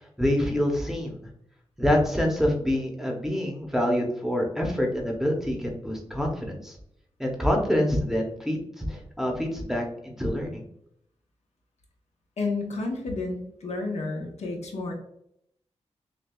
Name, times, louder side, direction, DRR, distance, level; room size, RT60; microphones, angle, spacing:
voice 1, 0.2-1.2 1.8-6.7 7.2-10.6, left 1 dB, 5° right, 0 dB, 0.7 m, -26 dB
voice 2, 12.4-14.9, left 3 dB, 80° left, 1 dB, 0.9 m, -31 dB
6.5 x 2.3 x 2.3 m, 0.73 s
wide cardioid pair, 150°, 11 cm